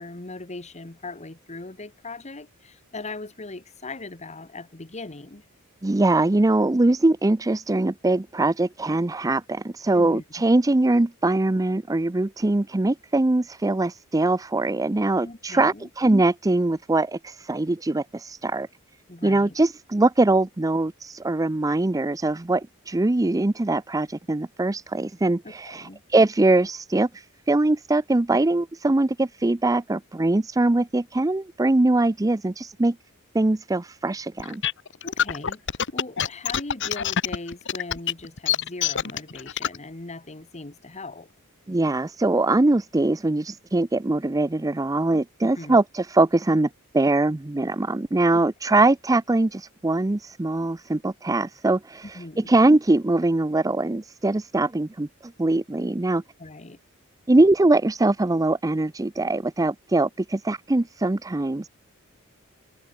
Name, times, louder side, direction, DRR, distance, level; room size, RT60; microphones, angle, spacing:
voice 1, 0.0-5.4 9.9-10.2 15.2-15.9 19.1-19.5 25.4-26.0 35.0-41.3 45.4-45.8 48.3-48.4 52.1-52.5 56.4-56.8, left 2 dB, 30° left, 1.6 m, -39 dB
voice 2, 5.8-18.7 19.2-33.0 33.3-34.6 41.7-52.2 52.5-56.2 57.3-61.7, right 2 dB, 15° right, 0.5 m, -22 dB
sound 1, 34.4-39.8, left 8 dB, 60° left, 1.3 m, -25 dB
head